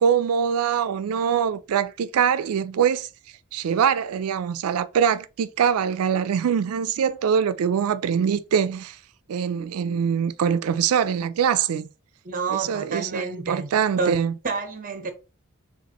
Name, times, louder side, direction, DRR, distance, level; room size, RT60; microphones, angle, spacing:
voice 1, 0.0-3.1 3.5-9.0 9.3-11.9 12.5-14.3, right 7 dB, 85° right, 0.4 m, -23 dB
voice 2, 12.2-13.7 14.0-15.1, right 4 dB, 40° right, 0.9 m, -29 dB
6.8 x 2.5 x 2.9 m
head